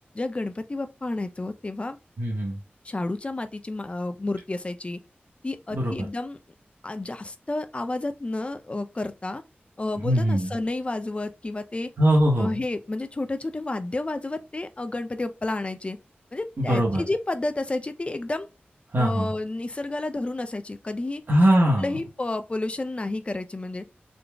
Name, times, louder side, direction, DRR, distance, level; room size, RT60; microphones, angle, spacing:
voice 1, 0.1-2.0 2.8-5.0 5.4-6.4 6.8-9.4 9.8-11.9 12.4-16.0 16.3-18.5 19.0-21.2 21.8-23.8, left 2 dB, 30° left, 0.5 m, -31 dB
voice 2, 2.2-2.6 5.7-6.1 10.0-10.5 12.0-12.5 16.6-17.0 18.9-19.3 21.3-22.0, equal, 60° right, 1.0 m, -21 dB
3.9 x 2.0 x 3.4 m
wide cardioid pair, 95°, 4 cm